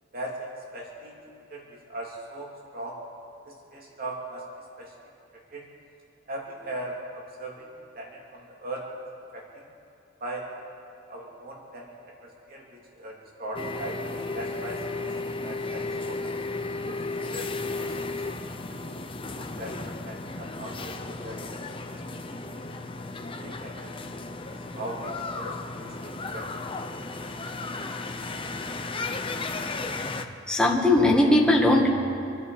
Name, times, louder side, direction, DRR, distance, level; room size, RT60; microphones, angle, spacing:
voice 1, 0.1-1.1 1.5-2.9 3.4-4.4 4.8-4.9 5.5-5.7 6.3-7.7 7.9-8.8 9.3-9.4 10.2-10.4 11.1-14.0 14.3-15.1 15.4-16.2 16.8-18.2 19.1-21.0 21.2-21.4 21.9-22.4 23.4-24.1 24.4-26.5 26.8-27.4, right 1 dB, 50° right, -2 dB, 2.7 m, -39 dB
sound 1, 13.5-30.2, left 3 dB, 25° left, 0.8 m, -34 dB
voice 2, 30.5-31.9, left 1 dB, 5° left, -2 dB, 1.8 m, -19 dB
26.5 x 11.0 x 4.9 m, 2.6 s
head